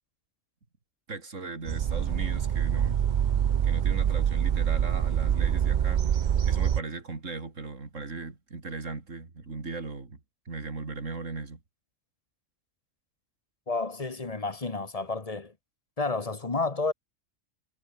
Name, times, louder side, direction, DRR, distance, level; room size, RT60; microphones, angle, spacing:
voice 1, 1.1-3.0 3.6-10.2 10.5-11.6, right 3 dB, 85° right, 3.4 m, -38 dB
sound 1, 1.7-6.8, right 9 dB, 50° right, 0.6 m, -25 dB
voice 2, 13.7-15.5 16.0-16.9, left 3 dB, 30° left, 1.6 m, -30 dB
omnidirectional pair, 1.3 m